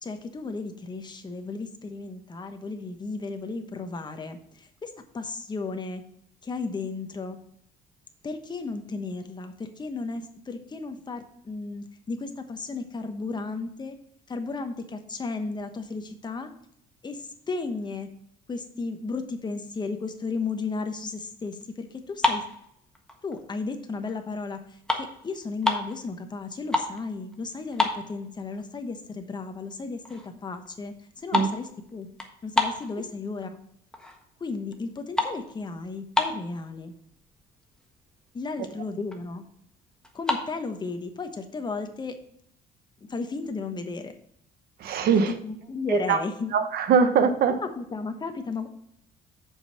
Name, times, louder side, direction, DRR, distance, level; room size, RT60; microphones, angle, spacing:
voice 1, 0.0-6.0 6.4-7.4 8.2-14.0 14.3-16.5 17.0-18.1 18.5-22.4 23.2-32.1 32.4-33.6 34.4-36.9 38.3-39.4 40.1-42.1 43.0-44.1 45.1-46.5 47.5-48.7, left 4 dB, 25° left, 6 dB, 1.1 m, -34 dB
sound 1, 22.0-23.5 23.9-24.2 24.5-26.0 26.4-27.0 27.3-27.4 27.7-28.6 29.0-29.1 29.7-29.8 30.0-30.4 30.7-33.5 33.9-34.4 34.7-36.6 37.3-37.4 37.6-37.9 38.3-38.4 38.6-39.3 40.0-40.5, left 2 dB, 5° left, 1.4 m, -29 dB
voice 2, 44.8-45.3 45.9-46.2 46.5-47.5, right 6 dB, 65° right, 9 dB, 1.1 m, -22 dB
7.1 x 5.4 x 5.8 m, 0.71 s
cardioid pair, 110°, 17 cm